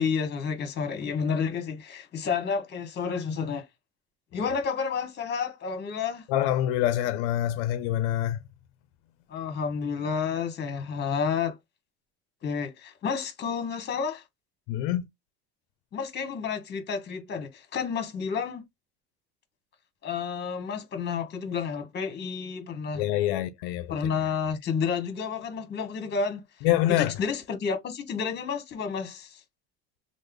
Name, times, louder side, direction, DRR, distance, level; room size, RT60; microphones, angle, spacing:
voice 1, 0.0-3.6 4.3-6.2 9.3-11.6 12.4-14.2 15.9-18.6 20.0-23.0 23.9-26.5 26.9-29.4, left 6 dB, 35° left, 1.1 m, -30 dB
voice 2, 6.3-8.4 14.7-15.1 22.9-24.0 26.6-27.2, left 13 dB, 80° left, 0.5 m, -26 dB
3.2 x 2.0 x 3.6 m
supercardioid pair, 125°, 31 cm